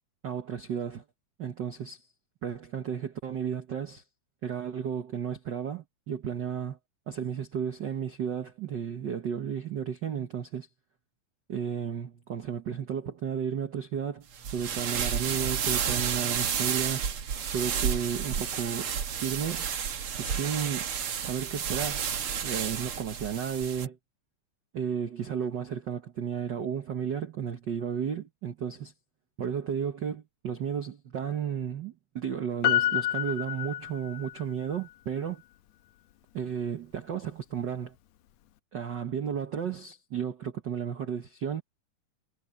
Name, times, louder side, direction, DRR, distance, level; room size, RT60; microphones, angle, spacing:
voice 1, 0.2-1.0 1.4-2.1 2.4-4.0 4.4-6.8 7.1-10.7 11.5-14.3 14.5-17.2 17.5-18.9 19.2-19.7 20.2-20.9 21.2-22.1 22.4-24.0 24.7-28.9 29.4-35.4 36.3-37.9 38.7-41.6, right 8 dB, 65° right, 1.1 m, -33 dB
sound 1, 14.3-23.9, right 7 dB, 50° right, 2.0 m, -31 dB
Piano, 32.6-34.4 34.7-34.8, left 13 dB, 70° left, 1.8 m, -28 dB
omnidirectional pair, 3.6 m